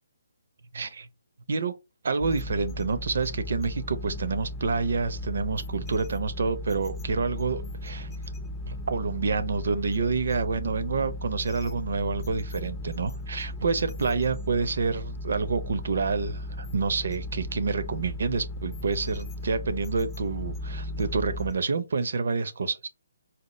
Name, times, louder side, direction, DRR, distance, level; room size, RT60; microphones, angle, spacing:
voice 1, 0.7-1.1 1.5-1.7 2.0-8.2 8.7-22.9, right 4 dB, 60° right, 0.6 m, -28 dB
sound 1, 2.2-21.5, left 1 dB, 15° left, 0.5 m, -36 dB
4.3 x 2.0 x 3.1 m
figure-of-eight pair, 145°, 0 cm